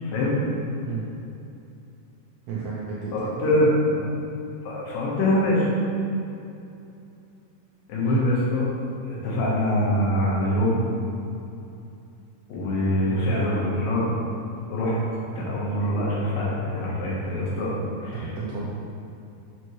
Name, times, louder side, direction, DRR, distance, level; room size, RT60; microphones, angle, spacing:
voice 1, 0.0-0.4 3.1-3.7 4.6-5.7 7.9-8.7 9.0-10.8 12.5-14.1 14.7-15.0 15.4-18.2 18.5-18.6, left 1 dB, 85° left, -5 dB, 2.9 m, -24 dB
voice 2, 2.5-3.6 3.9-4.2 8.0-8.2 12.9-13.4 18.1-18.6, right 6 dB, 75° right, -6 dB, 1.6 m, -33 dB
6.6 x 6.0 x 3.1 m, 2.7 s
omnidirectional pair, 3.9 m